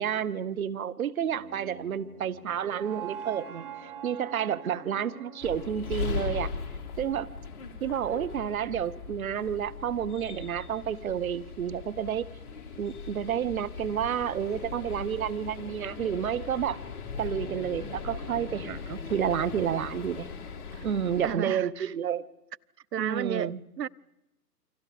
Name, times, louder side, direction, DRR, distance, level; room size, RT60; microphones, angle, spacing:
voice 1, 0.0-3.7 4.0-6.5 7.0-7.3 7.8-12.3 12.7-16.8 17.2-20.3 20.8-22.2 23.0-23.6, right 9 dB, 55° right, 1.1 m, -30 dB
sound 1, 1.2-7.3, right 8 dB, 30° right, 2.4 m, -44 dB
sound 2, 5.4-21.4, left 5 dB, 30° left, 2.2 m, -39 dB
voice 2, 21.2-21.9 22.9-23.9, right 9 dB, 75° right, 0.9 m, -33 dB
29.0 x 24.5 x 5.1 m
hypercardioid pair, 145°, 49 cm